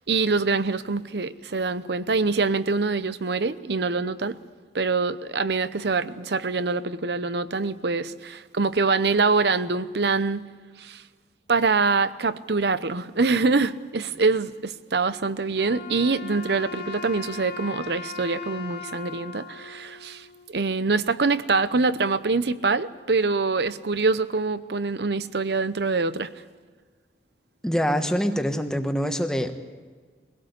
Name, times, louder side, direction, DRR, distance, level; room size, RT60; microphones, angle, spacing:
voice 1, 0.1-4.4 4.7-10.4 10.8-11.0 11.5-26.3, right 4 dB, 70° right, 14 dB, 0.8 m, -24 dB
Wind instrument woodwind instrument, 15.5-20.7, left 5 dB, 65° left, 2.5 m, -39 dB
voice 2, 27.6-29.5, equal, 5° left, 6 dB, 1.3 m, -25 dB
23.5 x 17.5 x 8.3 m, 1.5 s
head